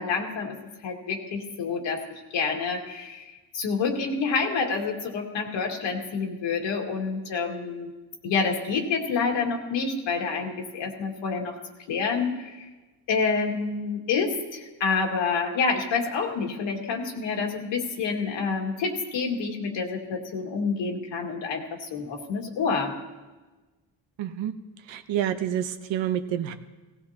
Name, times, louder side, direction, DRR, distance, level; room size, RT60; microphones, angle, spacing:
voice 1, 0.0-7.9 8.2-11.6 11.9-12.7 13.1-23.0, left 5 dB, 85° left, 1 dB, 2.2 m, -28 dB
voice 2, 24.2-24.5 24.9-26.5, right 10 dB, 85° right, 9 dB, 1.0 m, -28 dB
18.0 x 17.0 x 2.9 m, 1.2 s
cardioid pair, 105°, 44 cm